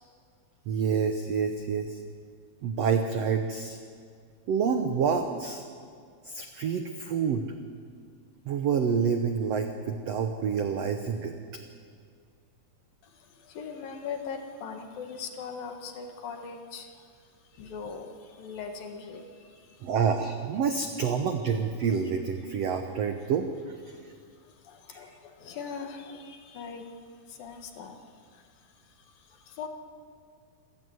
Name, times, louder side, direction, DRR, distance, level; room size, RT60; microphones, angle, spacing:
voice 1, 0.7-2.0 2.6-3.8 4.5-5.6 6.2-7.5 8.4-11.3 19.8-24.1 24.9-25.0, right 6 dB, 75° right, 6 dB, 1.5 m, -28 dB
voice 2, 13.0-17.1 17.5-19.9 23.9-27.0 27.3-28.5 28.8-29.7, left 5 dB, 70° left, 5 dB, 3.4 m, -41 dB
27.0 x 16.0 x 8.0 m, 2.2 s
omnidirectional pair, 4.4 m